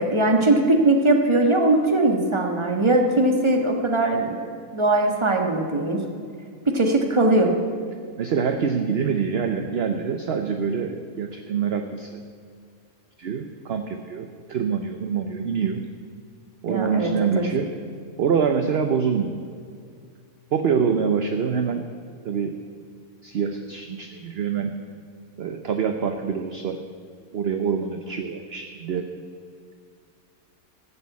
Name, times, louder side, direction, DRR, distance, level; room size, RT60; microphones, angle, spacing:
voice 1, 0.0-6.0 6.6-7.5 16.7-17.5, right 2 dB, 20° right, 2 dB, 1.3 m, -20 dB
voice 2, 8.2-12.2 13.2-15.8 16.6-17.7 18.2-19.3 20.5-21.8 22.2-22.6 23.2-24.8 25.4-26.8 27.3-29.1, right 6 dB, 55° right, 6 dB, 0.8 m, -25 dB
15.0 x 7.0 x 8.2 m, 2.2 s
omnidirectional pair, 1.5 m